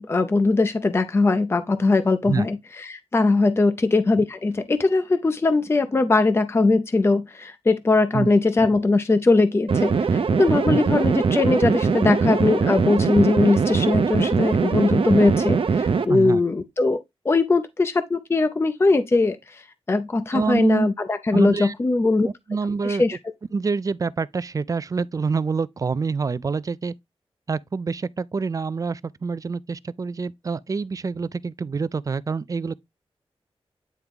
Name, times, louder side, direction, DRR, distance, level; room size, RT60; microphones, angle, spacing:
voice 1, 0.0-22.3 22.8-23.2, left 3 dB, 25° left, 0.5 m, -21 dB
sound 1, 9.7-16.0, right 5 dB, 60° right, 0.7 m, -21 dB
voice 2, 16.1-16.4 20.3-20.9 21.3-21.7 22.2-23.0 23.5-26.9 27.5-32.7, right 4 dB, 35° right, 0.3 m, -26 dB
9.4 x 3.4 x 3.6 m
wide cardioid pair, 145°, 10 cm